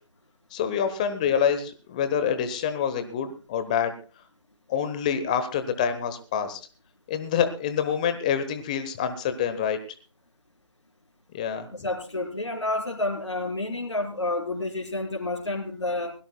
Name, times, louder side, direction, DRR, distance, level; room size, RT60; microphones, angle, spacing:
voice 1, 0.5-3.9 4.7-6.6 7.1-9.8 11.3-11.7, left 8 dB, 15° left, 10 dB, 1.0 m, -26 dB
voice 2, 11.7-16.1, left 2 dB, 65° left, -1 dB, 4.7 m, -29 dB
23.0 x 17.0 x 2.3 m, 0.37 s
figure-of-eight pair, 160°, 16 cm